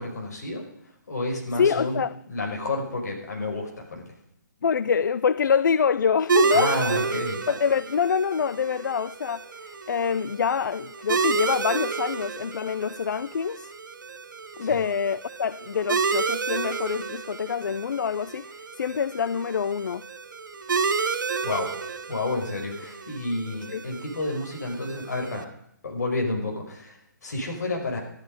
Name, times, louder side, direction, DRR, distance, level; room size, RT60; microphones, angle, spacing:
voice 1, 0.0-2.0 2.3-4.1 6.5-7.4 14.6-14.8 21.4-21.7 22.1-25.5 25.8-28.0, left 2 dB, 60° left, 5.0 m, -30 dB
voice 2, 1.6-2.1 4.6-6.7 7.5-13.7 14.6-20.1 23.7-23.8, left 6 dB, 75° left, 0.5 m, -26 dB
sound 1, 6.3-25.4, right 5 dB, 80° right, 1.3 m, -30 dB
13.0 x 12.0 x 5.2 m
hypercardioid pair, 175°, 10 cm